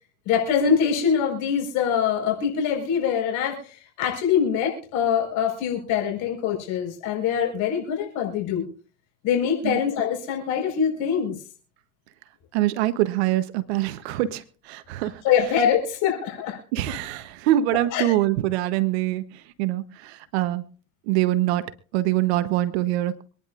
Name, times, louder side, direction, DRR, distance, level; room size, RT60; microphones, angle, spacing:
voice 1, 0.2-8.7 9.2-11.4 15.2-16.6 17.9-18.0, left 7 dB, 70° left, 1 dB, 4.6 m, -24 dB
voice 2, 12.5-15.2 16.7-20.6 21.1-21.6 21.9-23.2, right 14 dB, 90° right, 14 dB, 0.9 m, -24 dB
26.0 x 10.0 x 2.5 m, 0.41 s
supercardioid pair, 100°, 32 cm